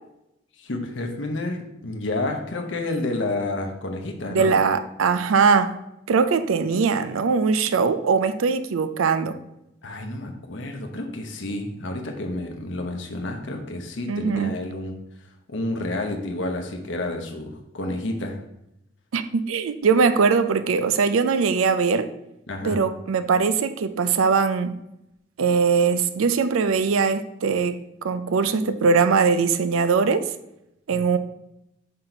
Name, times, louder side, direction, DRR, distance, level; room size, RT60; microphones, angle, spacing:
voice 1, 0.6-4.5 9.8-14.9 15.5-18.4 22.5-22.8, left 2 dB, 60° left, 3 dB, 0.8 m, -30 dB
voice 2, 4.3-5.8 6.1-9.4 14.1-14.5 19.1-22.1 22.6-24.8 25.4-27.8 28.0-30.3 30.9-31.2, right 5 dB, 80° right, 12 dB, 0.4 m, -21 dB
5.7 x 4.0 x 4.4 m, 0.84 s
head